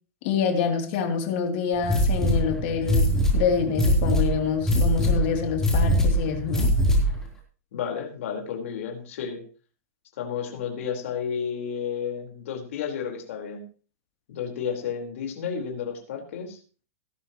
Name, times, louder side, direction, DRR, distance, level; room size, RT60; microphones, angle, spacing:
voice 1, 0.2-6.7, left 6 dB, 45° left, 3 dB, 3.2 m, -26 dB
sound 1, 1.8-7.2, equal, 5° left, 3.9 m, -22 dB
voice 2, 7.7-9.4 10.2-13.6 14.3-16.6, left 7 dB, 60° left, 1 dB, 4.6 m, -32 dB
18.0 x 13.0 x 3.1 m, 0.39 s
supercardioid pair, 160°, 8 cm